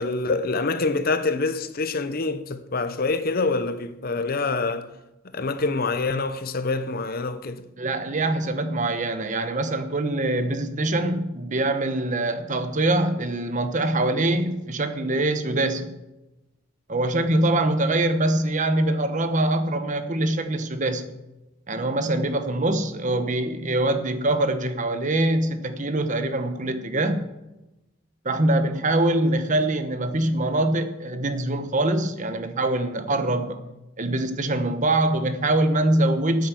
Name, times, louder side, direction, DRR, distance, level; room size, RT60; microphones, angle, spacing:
voice 1, 0.0-4.9 5.3-7.6, left 3 dB, 50° left, 0.8 m, -26 dB
voice 2, 7.8-15.9 16.9-21.1 21.7-27.2 28.2-33.6 34.0-36.5, right 1 dB, 40° right, 1.0 m, -24 dB
9.2 x 9.2 x 7.0 m
head